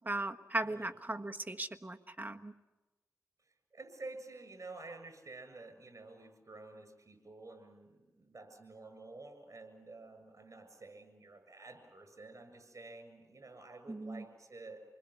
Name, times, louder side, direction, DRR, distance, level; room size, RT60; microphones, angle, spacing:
voice 1, 0.0-2.5 13.9-14.2, right 2 dB, 30° right, 7 dB, 1.5 m, -38 dB
voice 2, 3.7-15.0, right 3 dB, 55° right, 8 dB, 7.2 m, -51 dB
28.0 x 21.0 x 8.1 m, 1.1 s
cardioid pair, 50°, 6 cm